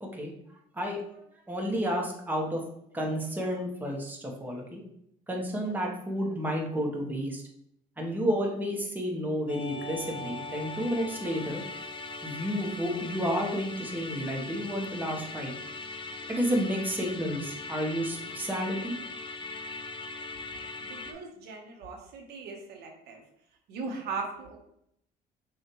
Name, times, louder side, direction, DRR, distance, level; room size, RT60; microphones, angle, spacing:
voice 1, 0.0-0.3 0.8-1.2 1.5-2.6 2.9-4.8 5.3-7.4 8.0-11.6 12.2-15.5 16.3-18.9, equal, 10° right, 0 dB, 0.9 m, -31 dB
Musical instrument, 9.5-21.1, left 3 dB, 30° left, 0.5 m, -40 dB
voice 2, 20.8-23.2 23.7-24.6, right 4 dB, 75° right, 1 dB, 0.9 m, -39 dB
6.2 x 2.4 x 3.0 m, 0.74 s
cardioid pair, 110°, 17 cm